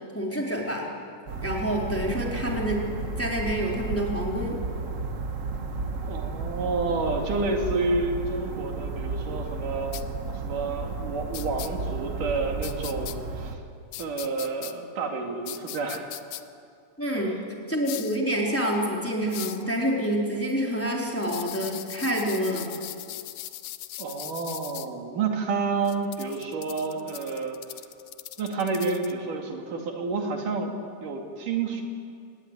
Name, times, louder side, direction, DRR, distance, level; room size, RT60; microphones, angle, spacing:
voice 1, 0.1-0.9 1.4-2.8 3.2-4.6 17.0-17.4 17.7-22.7, equal, 5° left, -1 dB, 3.5 m, -27 dB
sound 1, 1.3-13.5, right 3 dB, 55° right, 0.8 m, -33 dB
voice 2, 6.0-10.0 10.3-13.6 14.0-16.1 24.0-27.6 28.4-31.8, right 3 dB, 90° right, 3 dB, 4.1 m, -29 dB
sound 2, 9.9-10.0 11.3-11.7 12.6-13.1 13.9-14.7 15.5-16.4 17.8-18.2 19.3-19.6 21.2-24.9 25.8-29.1, left 14 dB, 90° left, 2.5 m, -39 dB
25.0 x 20.0 x 9.7 m, 2.3 s
omnidirectional pair, 3.6 m